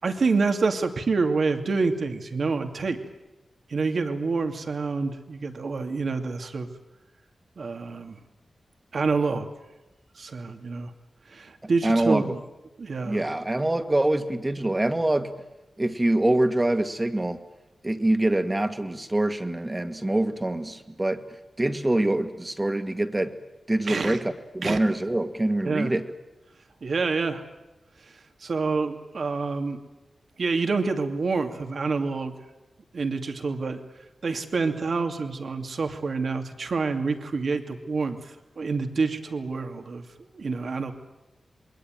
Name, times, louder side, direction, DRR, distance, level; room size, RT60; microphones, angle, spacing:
voice 1, 0.0-3.0 3.7-6.7 7.6-8.2 8.9-9.5 10.2-10.9 11.3-12.4 12.8-13.2 23.9-24.2 24.6-24.8 25.6-25.9 26.8-27.4 28.4-29.8 30.4-32.3 32.9-33.8 34.2-40.9, right 4 dB, 65° right, 6 dB, 2.6 m, -27 dB
voice 2, 11.8-12.3 13.0-15.3 15.8-17.4 17.8-21.2 21.6-23.4 23.7-26.1, right 1 dB, 20° right, 8 dB, 2.1 m, -25 dB
28.0 x 21.5 x 9.2 m, 1.0 s
cardioid pair, 65°, 0 cm